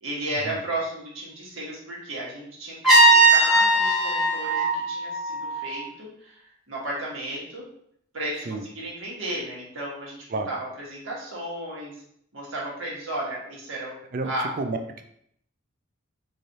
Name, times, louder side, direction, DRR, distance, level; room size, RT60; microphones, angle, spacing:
voice 1, 0.0-6.4 6.7-7.7 8.1-10.2 10.5-11.9 12.3-13.9 14.2-14.5, right 1 dB, 70° right, -5 dB, 1.3 m, -34 dB
Trumpet, 2.8-5.8, right 2 dB, ahead, 1.2 m, -19 dB
voice 2, 14.1-15.0, right 3 dB, 40° right, 5 dB, 0.3 m, -30 dB
3.2 x 2.5 x 4.0 m, 0.71 s
head